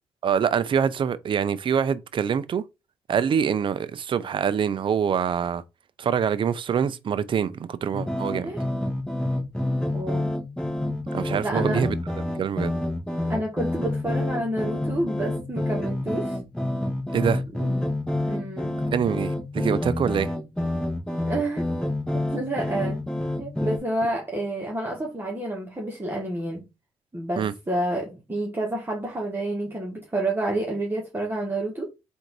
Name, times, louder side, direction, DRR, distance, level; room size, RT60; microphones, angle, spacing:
voice 1, 0.2-2.6 3.1-5.6 6.0-8.5 11.1-11.9 12.4-12.7 17.1-17.4 18.9-20.3 27.4-27.5, right 7 dB, 50° right, 0.5 m, -25 dB
sound 1, 7.9-23.8, left 1 dB, 5° left, 1.3 m, -28 dB
voice 2, 9.9-10.3 11.4-11.8 13.3-16.4 17.5-17.9 18.2-18.8 21.3-21.7 22.3-23.0 23.4-26.6 27.1-31.9, right 1 dB, 20° right, 1.5 m, -29 dB
3.7 x 2.7 x 4.6 m
cardioid pair, 70°, 11 cm